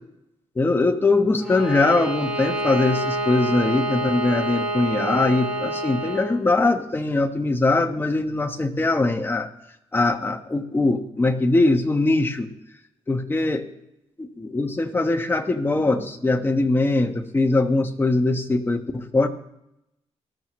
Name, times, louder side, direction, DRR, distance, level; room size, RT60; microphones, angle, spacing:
voice 1, 0.6-9.5 9.9-12.5 13.1-13.6 14.2-19.3, left 2 dB, 20° left, 5 dB, 1.1 m, -21 dB
Bowed string instrument, 1.4-6.3, right 1 dB, 10° right, 3.7 m, -27 dB
19.5 x 13.0 x 3.1 m, 0.85 s
wide cardioid pair, 140°, 12 cm